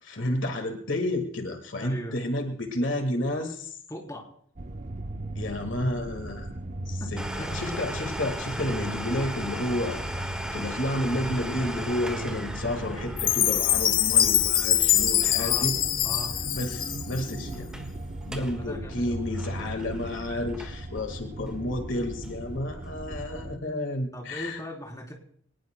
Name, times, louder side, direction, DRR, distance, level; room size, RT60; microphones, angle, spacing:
voice 1, 0.0-3.8 5.3-6.5 6.9-7.2 7.5-10.0 10.5-15.8 16.5-17.7 18.2-24.6, left 1 dB, 65° left, 5 dB, 1.8 m, -31 dB
voice 2, 1.8-2.1 3.9-4.3 7.4-7.5 15.4-15.7 16.0-16.3 18.4-19.6 21.0-21.1 24.1-25.1, equal, 15° left, 0 dB, 3.5 m, -39 dB
sound 1, 4.6-23.6, right 1 dB, 40° right, 0.8 m, -37 dB
Domestic sounds home sounds, 7.2-16.6 16.9-17.0 17.5-17.9 18.2-18.6 18.9-21.0 21.5-21.6 22.2-22.3, equal, 5° right, 1.6 m, -38 dB
Chime, 13.2-17.4, left 11 dB, 45° left, 0.7 m, -23 dB
25.0 x 19.0 x 2.2 m, 0.64 s
head